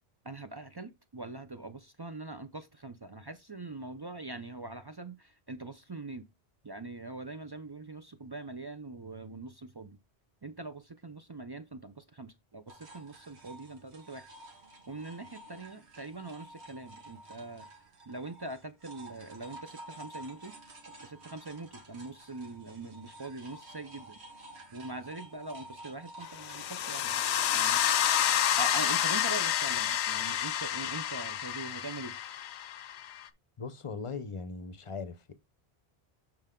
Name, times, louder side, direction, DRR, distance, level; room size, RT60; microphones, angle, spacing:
voice 1, 0.2-6.3 6.6-10.0 10.4-14.3 14.9-17.7 18.1-20.5 21.0-24.2 24.7-27.2 27.5-27.8 28.6-32.2, right 2 dB, 35° right, 0.4 m, -43 dB
sound 1, 12.7-27.3, right 1 dB, 85° right, 1.8 m, -51 dB
sound 2, 26.4-33.3, left 10 dB, 90° left, 0.9 m, -29 dB
voice 2, 33.6-35.3, left 4 dB, 35° left, 0.7 m, -39 dB
7.7 x 4.4 x 3.7 m
omnidirectional pair, 1.1 m